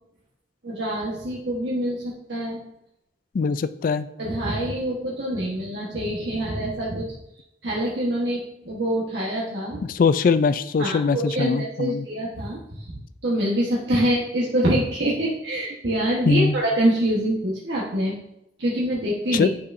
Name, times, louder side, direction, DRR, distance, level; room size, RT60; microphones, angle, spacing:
voice 1, 0.6-2.6 4.2-7.1 7.6-9.8 10.8-18.2 18.6-19.5, right 1 dB, 80° right, -5 dB, 1.2 m, -25 dB
voice 2, 3.3-4.1 9.9-12.1 16.3-16.5 19.3-19.5, left 5 dB, 50° left, 13 dB, 0.3 m, -21 dB
9.4 x 5.5 x 2.6 m, 0.81 s
head